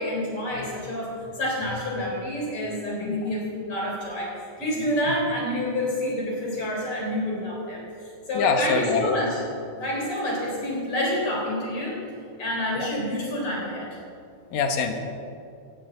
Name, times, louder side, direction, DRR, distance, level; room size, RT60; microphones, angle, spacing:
voice 1, 0.0-9.4 9.8-12.0 12.4-13.9, left 1 dB, 40° left, -3 dB, 4.6 m, -28 dB
voice 2, 8.3-9.2 12.8-12.9 14.5-15.0, left 4 dB, 80° left, 5 dB, 2.9 m, -24 dB
16.5 x 16.0 x 4.0 m, 2.4 s
omnidirectional pair, 3.8 m